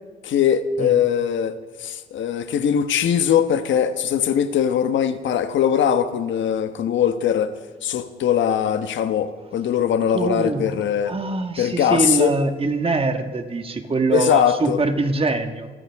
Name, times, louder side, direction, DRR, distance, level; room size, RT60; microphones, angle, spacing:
voice 1, 0.2-7.6 7.8-11.2 11.6-12.3 14.1-14.8, left 9 dB, 70° left, 1.3 m, -21 dB
voice 2, 10.1-10.7 11.0-15.7, right 3 dB, 30° right, 1.8 m, -23 dB
27.5 x 14.0 x 3.7 m
cardioid pair, 90°, 20 cm